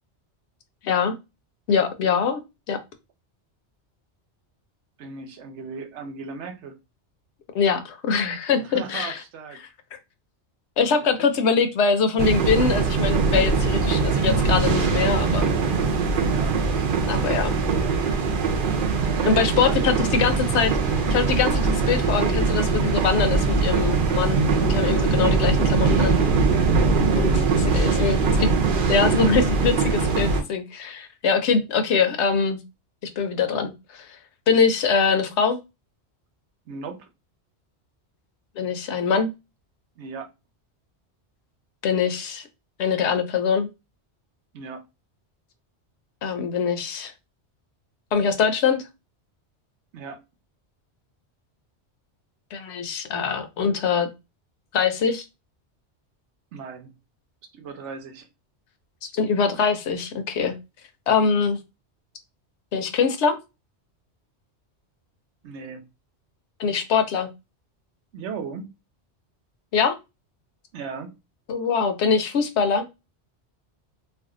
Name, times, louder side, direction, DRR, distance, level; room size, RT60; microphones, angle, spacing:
voice 1, 0.8-1.1 1.7-2.4 2.7-2.8 7.5-9.2 9.6-10.0 10.8-15.5 17.1-17.6 19.2-26.2 27.1-27.3 27.7-28.5 28.9-32.6 33.2-34.2 34.5-35.6 38.6-39.3 41.8-42.5 42.8-43.7 46.2-47.1 48.1-48.8 52.5-54.1 54.7-55.2 59.1-60.6 61.1-61.6 62.7-63.4 66.6-67.3 69.7-70.0 71.5-72.9, left 5 dB, 75° left, 0.9 m, -23 dB
voice 2, 5.0-6.8 8.6-9.6 11.2-11.3 16.2-17.1 19.0-20.0 26.9-28.2 36.7-37.1 40.0-40.3 44.5-44.8 49.9-50.2 56.5-56.9 57.5-58.3 65.4-65.9 68.1-68.7 70.7-71.2, right 5 dB, 80° right, 0.9 m, -37 dB
sound 1, 12.2-30.4, right 4 dB, 55° right, 0.7 m, -21 dB
2.5 x 2.3 x 3.6 m
omnidirectional pair, 1.2 m